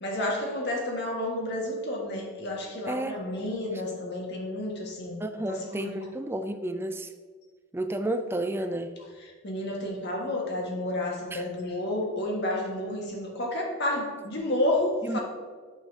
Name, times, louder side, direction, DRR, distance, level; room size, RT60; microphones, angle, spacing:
voice 1, 0.0-5.2 5.5-6.1 9.2-15.2, left 1 dB, 55° left, 0 dB, 1.6 m, -31 dB
voice 2, 2.9-3.2 5.2-7.1 7.7-8.9 11.3-11.4 15.0-15.2, right 1 dB, 10° right, 8 dB, 0.3 m, -31 dB
8.8 x 6.7 x 2.8 m, 1.6 s
head